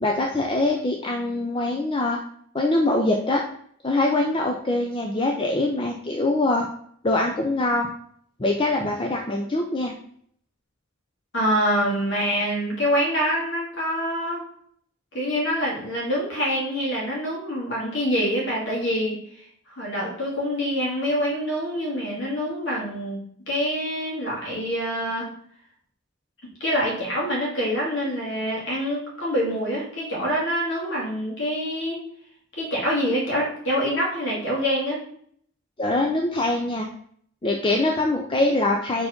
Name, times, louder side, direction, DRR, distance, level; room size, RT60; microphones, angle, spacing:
voice 1, 0.0-2.2 2.5-3.4 3.8-6.7 7.0-7.9 8.4-9.9 35.8-36.9 37.4-39.1, left 2 dB, 25° left, 1 dB, 0.5 m, -23 dB
voice 2, 11.3-14.4 15.1-19.4 19.8-23.2 23.5-25.3 26.6-32.0 32.5-35.0, equal, 60° left, -4 dB, 2.4 m, -25 dB
4.8 x 4.2 x 5.0 m, 0.63 s
head